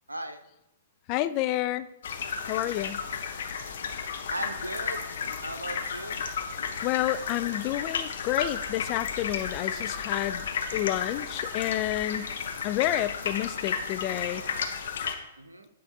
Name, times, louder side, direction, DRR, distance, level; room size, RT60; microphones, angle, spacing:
voice 1, 0.1-0.4 4.3-6.2 15.4-15.7, right 1 dB, 80° right, 8 dB, 0.7 m, -37 dB
voice 2, 1.1-1.9 2.5-3.0 6.8-10.5 10.7-12.3 12.6-14.4, left 14 dB, 35° left, 13 dB, 0.3 m, -29 dB
sound 1, 2.0-15.1, left 6 dB, 55° left, 0.7 m, -33 dB
8.7 x 5.2 x 3.2 m, 0.88 s
figure-of-eight pair, 110°, 0 cm